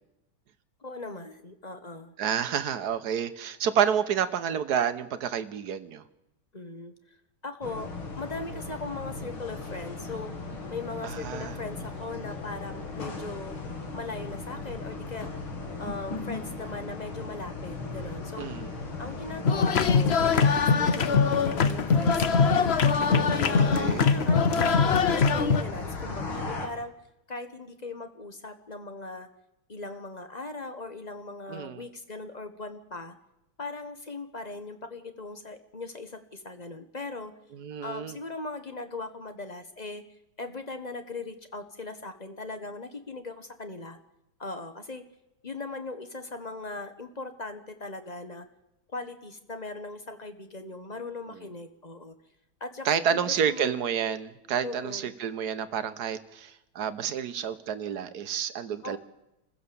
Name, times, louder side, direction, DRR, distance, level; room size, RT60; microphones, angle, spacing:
voice 1, 0.8-2.1 6.5-6.9 7.4-7.9 8.2-10.3 10.7-13.6 13.9-15.3 15.8-18.5 19.0-22.2 22.4-22.8 23.3-26.9 27.3-29.3 29.7-33.1 33.6-37.3 37.8-40.0 40.4-44.0 44.4-45.0 45.4-48.5 48.9-52.1 52.6-53.7 54.6-55.1 58.8-59.0, left 3 dB, 25° left, 8 dB, 1.0 m, -39 dB
voice 2, 2.2-6.0 11.0-11.6 18.4-18.7 23.6-24.1 31.5-31.8 37.5-38.2 51.3-51.4 52.8-59.0, right 8 dB, 55° right, 11 dB, 1.4 m, -29 dB
sound 1, 7.6-26.7, left 3 dB, 80° left, 3.4 m, -36 dB
sound 2, 19.5-25.6, left 5 dB, 65° left, 0.6 m, -22 dB
26.5 x 15.5 x 7.0 m, 0.91 s
omnidirectional pair, 2.2 m